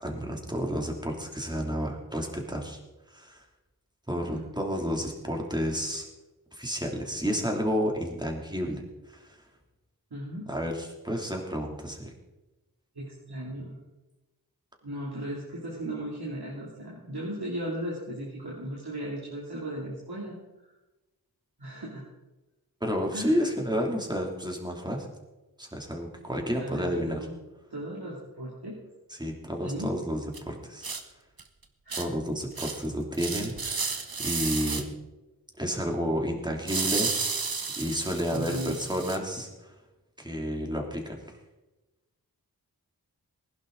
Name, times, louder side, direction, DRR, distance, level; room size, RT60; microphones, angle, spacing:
voice 1, 0.0-2.8 3.1-3.4 4.1-6.0 6.5-9.4 10.5-12.1 22.8-25.1 25.6-27.2 29.2-30.9 31.9-34.8 35.6-39.7 40.2-41.2, equal, 10° right, 1 dB, 3.0 m, -31 dB
voice 2, 4.1-4.4 10.1-10.4 12.9-13.8 14.8-20.7 21.6-22.0 23.1-23.5 26.6-27.4 27.7-28.7 29.6-29.9 31.8-32.1 38.3-38.8, right 1 dB, 85° right, -6 dB, 3.0 m, -36 dB
sound 1, 30.3-30.4 30.8-31.0 31.4-31.5 31.9-32.1 32.6-32.9 33.1-34.8 36.7-39.2, right 4 dB, 70° right, 1.3 m, -32 dB
20.0 x 11.0 x 4.0 m, 1.1 s
wide cardioid pair, 50°, 37 cm